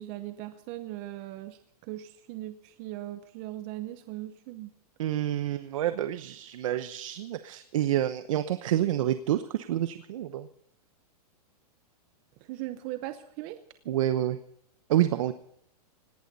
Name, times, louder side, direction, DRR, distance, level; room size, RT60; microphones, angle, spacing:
voice 1, 0.0-4.7 12.4-13.6, right 15 dB, 25° right, 11 dB, 0.7 m, -39 dB
voice 2, 5.0-10.5 13.9-14.4 14.9-15.3, right 12 dB, 55° right, 11 dB, 1.0 m, -28 dB
18.5 x 18.0 x 4.1 m, 0.69 s
supercardioid pair, 170°, 20 cm